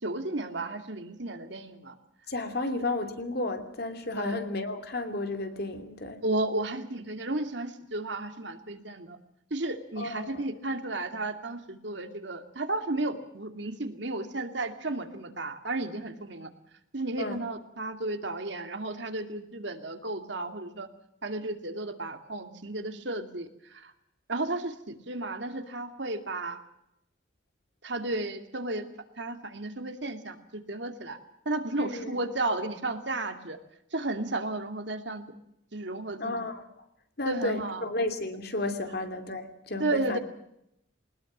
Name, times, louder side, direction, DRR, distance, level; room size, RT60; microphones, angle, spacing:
voice 1, 0.0-1.9 4.2-4.4 6.2-9.2 9.5-16.5 16.9-20.9 21.2-23.9 24.3-26.6 27.8-28.8 29.2-31.2 31.5-33.6 33.9-35.2 35.7-36.4 37.3-37.8 39.8-40.2, right 2 dB, 65° right, 7 dB, 2.4 m, -33 dB
voice 2, 2.3-6.2 10.0-10.4 17.2-17.4 31.8-32.1 36.2-36.6 37.2-40.2, left 2 dB, 55° left, 7 dB, 2.8 m, -32 dB
21.5 x 20.0 x 7.3 m, 0.78 s
head